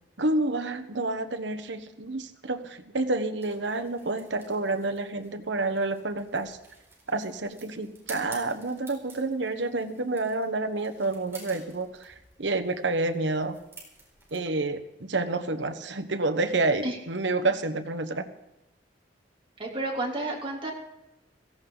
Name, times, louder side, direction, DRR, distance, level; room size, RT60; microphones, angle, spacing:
voice 1, 0.2-6.6 7.1-13.6 14.3-18.3, right 2 dB, 80° right, 7 dB, 1.3 m, -29 dB
sound 1, 3.4-14.4, right 3 dB, 15° right, 4.5 m, -51 dB
voice 2, 19.6-20.7, right 2 dB, 30° right, -1 dB, 3.4 m, -31 dB
17.0 x 16.0 x 4.0 m, 0.94 s
head